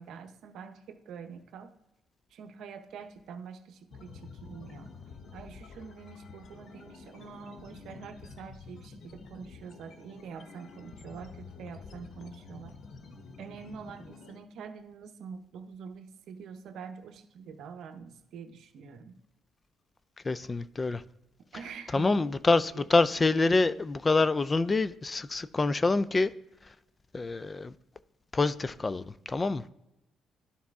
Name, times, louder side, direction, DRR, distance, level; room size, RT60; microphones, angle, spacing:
voice 1, 0.0-1.7 2.3-4.9 5.3-12.7 13.4-19.2 21.5-22.4 22.7-22.9, right 6 dB, 75° right, 0.7 m, -45 dB
sound 1, 3.9-14.4, left 4 dB, 65° left, 0.8 m, -49 dB
voice 2, 20.3-21.0 21.9-26.3 27.1-27.7 28.3-29.6, left 3 dB, 25° left, 0.3 m, -26 dB
11.0 x 4.1 x 3.5 m
cardioid pair, 90°, 0 cm